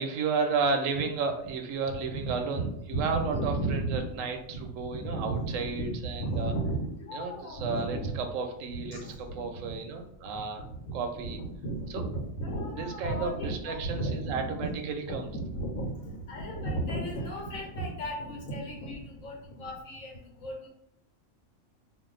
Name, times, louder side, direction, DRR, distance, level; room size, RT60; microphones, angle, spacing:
voice 1, 0.0-2.6 2.9-6.5 7.1-10.6 10.9-11.4 11.9-12.0 12.8-15.2, right 4 dB, 85° right, 5 dB, 1.0 m, -32 dB
voice 2, 2.0-4.2 4.5-8.1 8.8-9.8 10.3-14.7 15.1-20.7, right 2 dB, 85° left, -1 dB, 1.3 m, -34 dB
2.6 x 2.3 x 3.7 m, 0.74 s
omnidirectional pair, 1.3 m